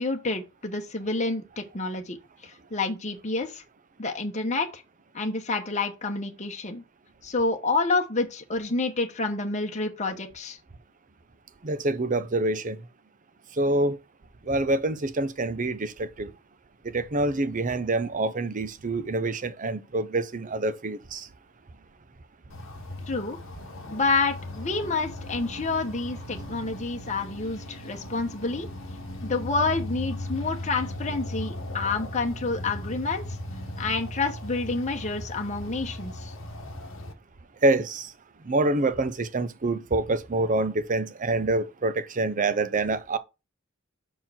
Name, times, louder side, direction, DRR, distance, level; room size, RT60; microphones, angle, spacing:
voice 1, 0.0-2.2 2.4-3.6 4.0-4.8 5.1-6.8 7.2-10.6 23.1-23.4 23.9-28.7 29.2-33.4 33.8-36.3, left 3 dB, 35° left, 1.1 m, -28 dB
voice 2, 11.6-12.8 13.5-14.0 14.4-16.3 16.8-21.3 37.6-38.1 38.4-43.2, right 2 dB, 40° right, 0.7 m, -26 dB
sound 1, 22.5-37.1, left 1 dB, 65° left, 1.1 m, -37 dB
5.9 x 4.6 x 5.7 m
head